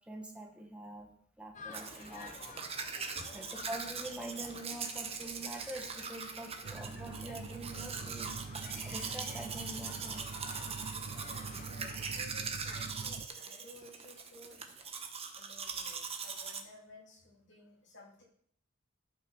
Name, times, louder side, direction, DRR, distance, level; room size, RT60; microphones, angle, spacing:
voice 1, 0.1-1.1 1.4-2.3 3.3-10.2, right 1 dB, 5° right, 1 dB, 1.6 m, -45 dB
sound 1, 1.5-12.2, left 4 dB, 40° left, 0.9 m, -51 dB
Domestic sounds home sounds, 1.7-16.6, right 5 dB, 30° right, 1.0 m, -41 dB
sound 2, 6.6-13.3, right 4 dB, 50° right, 0.4 m, -45 dB
voice 2, 11.3-14.6 15.3-18.2, left 1 dB, 60° left, -3 dB, 3.1 m, -55 dB
12.5 x 5.7 x 5.6 m, 0.63 s
head